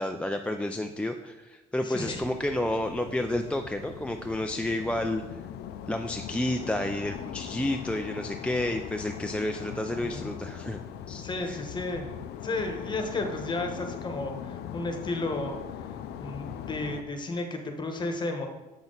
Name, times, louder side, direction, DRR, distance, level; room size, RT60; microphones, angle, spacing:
voice 1, 0.0-5.2 5.9-10.8 11.1-11.6, left 1 dB, 5° left, 4 dB, 0.4 m, -30 dB
voice 2, 1.8-2.2 9.9-10.3 11.2-12.0 12.4-15.6 16.2-18.5, left 2 dB, 25° left, 4 dB, 1.2 m, -33 dB
sound 1, 2.0-17.0, left 9 dB, 75° left, 0.5 m, -40 dB
7.1 x 6.1 x 4.0 m, 1.1 s
cardioid pair, 110°, 17 cm